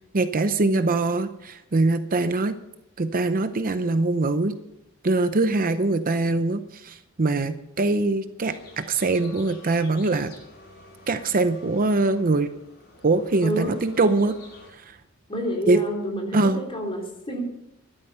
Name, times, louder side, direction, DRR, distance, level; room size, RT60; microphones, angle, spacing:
voice 1, 0.1-2.5 3.0-4.5 5.0-10.3 11.1-12.5 13.0-14.4 14.8-15.0 15.7-15.8 16.3-16.6, right 2 dB, 40° right, 10 dB, 0.7 m, -23 dB
sound 1, 8.4-14.7, left 2 dB, 50° left, 6.1 m, -49 dB
voice 2, 13.4-13.7 15.3-17.4, equal, 25° left, 0 dB, 3.8 m, -29 dB
14.5 x 12.0 x 5.6 m, 0.86 s
head